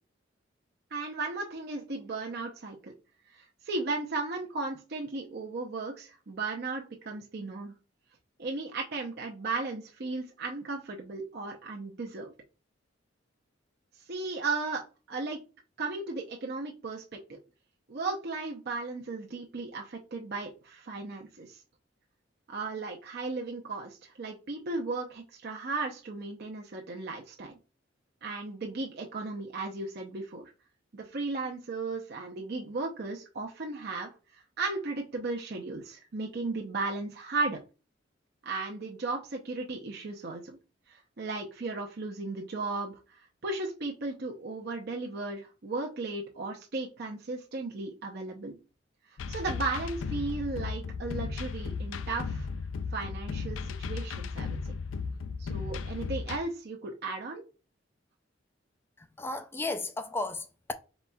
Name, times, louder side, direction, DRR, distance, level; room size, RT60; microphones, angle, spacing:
voice 1, 0.9-2.9 3.3-7.7 8.4-12.3 14.1-15.4 15.8-17.4 17.9-21.6 22.5-27.6 28.2-30.5 30.9-37.6 38.4-40.6 40.9-48.6 49.1-52.5 52.9-54.7 55.4-57.4, right 3 dB, 55° right, 0.7 m, -35 dB
sound 1, 49.2-56.4, left 5 dB, 85° left, 0.4 m, -35 dB
voice 2, 59.2-60.7, left 2 dB, 10° left, 0.3 m, -34 dB
4.1 x 4.1 x 2.3 m
head